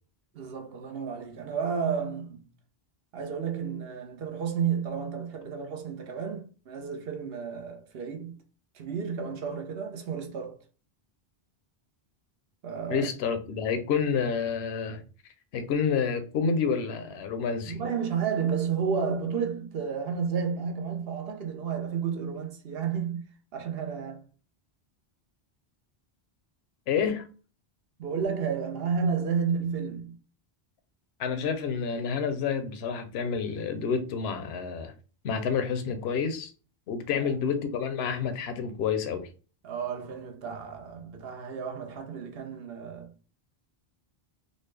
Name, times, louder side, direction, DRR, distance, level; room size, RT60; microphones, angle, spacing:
voice 1, 0.3-2.5 3.1-8.4 8.7-10.6 12.6-13.1 17.7-23.2 23.5-24.3 28.0-30.2 37.1-37.4 39.6-43.1, right 6 dB, 75° right, 0.9 m, -31 dB
voice 2, 12.9-15.0 15.5-17.8 26.9-27.3 31.2-34.9 35.2-36.5 36.9-39.3, left 6 dB, 80° left, 0.9 m, -29 dB
3.9 x 2.1 x 3.2 m
omnidirectional pair, 1.1 m